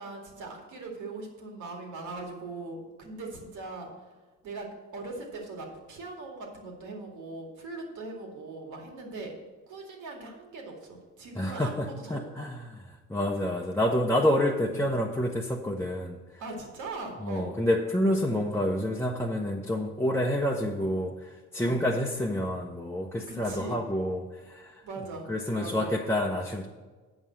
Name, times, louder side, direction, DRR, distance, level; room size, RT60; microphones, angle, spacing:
voice 1, 0.0-4.2 4.4-9.3 9.7-12.5 16.4-17.5 21.6-21.9 23.3-23.8 24.8-25.3 25.6-25.9, right 3 dB, 80° right, 1 dB, 2.3 m, -40 dB
voice 2, 11.4-12.7 13.1-16.2 17.2-24.8 25.3-26.7, left 1 dB, 10° left, -1 dB, 0.7 m, -28 dB
8.0 x 5.5 x 7.4 m, 1.4 s
cardioid pair, 90°, 30 cm